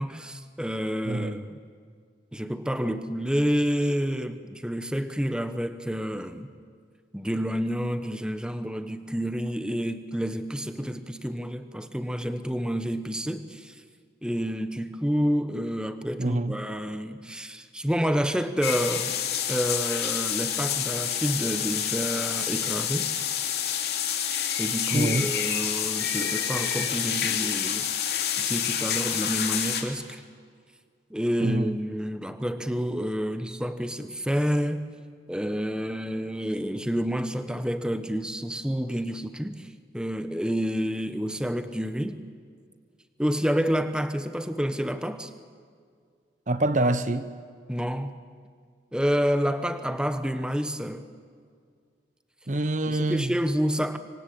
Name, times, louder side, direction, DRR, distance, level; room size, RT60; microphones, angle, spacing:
voice 1, 0.0-1.6 2.3-6.5 7.1-13.7 14.2-19.1 19.5-23.1 24.6-28.1 28.4-30.2 31.1-34.9 35.3-39.7 39.9-42.2 43.2-45.3 47.7-48.2 48.9-51.1 52.9-54.0, equal, 5° right, 10 dB, 1.2 m, -29 dB
voice 2, 1.1-1.4 16.2-16.5 24.9-25.3 31.4-31.8 46.5-47.3 52.5-53.3, right 2 dB, 45° right, 12 dB, 0.9 m, -26 dB
sound 1, 18.6-29.8, left 9 dB, 65° left, 2.9 m, -28 dB
27.0 x 24.0 x 8.7 m, 2.1 s
head